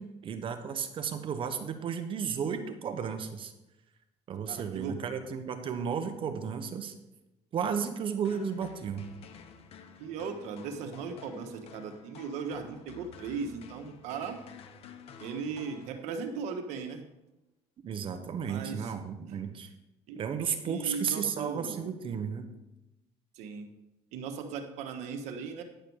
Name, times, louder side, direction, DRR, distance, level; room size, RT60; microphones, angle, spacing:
voice 1, 0.0-3.5 4.3-6.9 7.5-9.1 17.8-19.7 20.2-22.5, right 7 dB, 50° right, 8 dB, 1.1 m, -33 dB
voice 2, 4.5-5.0 10.0-14.4 15.2-17.0 18.4-18.9 19.3-19.4 20.1-21.9 23.3-23.7 24.1-25.6, right 5 dB, 80° right, 6 dB, 1.3 m, -38 dB
sound 1, 8.2-16.4, left 6 dB, 60° left, 1.0 m, -51 dB
10.5 x 6.9 x 4.7 m, 0.95 s
cardioid pair, 110°, 12 cm